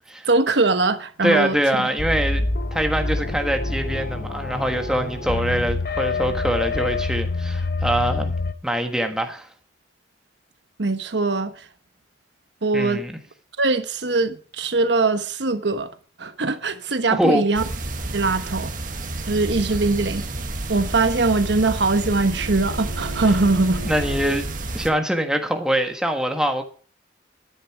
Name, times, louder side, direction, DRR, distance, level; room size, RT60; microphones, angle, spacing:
voice 1, 0.2-1.9 10.8-11.6 12.6-13.0 13.6-15.9 16.2-17.6 18.1-18.7 19.3-20.2 20.7-23.9, right 3 dB, 75° right, 1.1 m, -21 dB
voice 2, 1.2-2.4 2.7-8.3 8.6-9.5 12.7-13.1 17.1-17.4 23.8-24.5 24.7-26.6, right 1 dB, 5° right, 1.4 m, -23 dB
sound 1, 2.0-8.5, left 3 dB, 55° left, 1.1 m, -26 dB
sound 2, 17.5-24.9, right 2 dB, 45° right, 1.7 m, -30 dB
Bowed string instrument, 20.6-24.5, right 1 dB, 75° left, 5.5 m, -40 dB
11.5 x 10.0 x 4.7 m
head